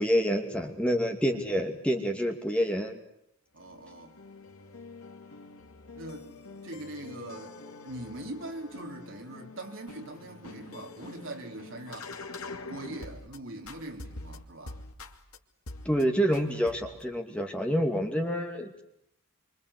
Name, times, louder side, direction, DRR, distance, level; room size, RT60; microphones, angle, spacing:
voice 1, 0.0-3.0 15.8-18.8, equal, 5° left, 2.5 m, -27 dB
voice 2, 3.5-4.2 6.0-6.3 6.6-7.6 7.8-12.1 12.7-14.8, right 1 dB, 60° right, 4.0 m, -42 dB
sound 1, 3.6-13.4 13.7-15.4 15.7-16.0 16.3-17.1, left 3 dB, 75° left, 2.7 m, -45 dB
27.0 x 26.0 x 8.4 m
head